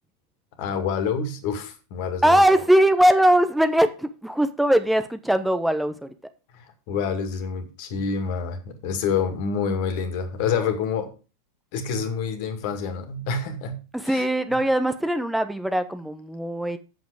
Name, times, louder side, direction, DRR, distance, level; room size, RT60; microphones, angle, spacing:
voice 1, 0.6-2.4 6.5-11.1 11.7-14.3, left 6 dB, 45° left, 2.1 m, -27 dB
voice 2, 2.2-6.1 13.9-16.8, right 1 dB, 5° right, 0.7 m, -20 dB
8.1 x 7.2 x 4.9 m
figure-of-eight pair, 90°, 0 cm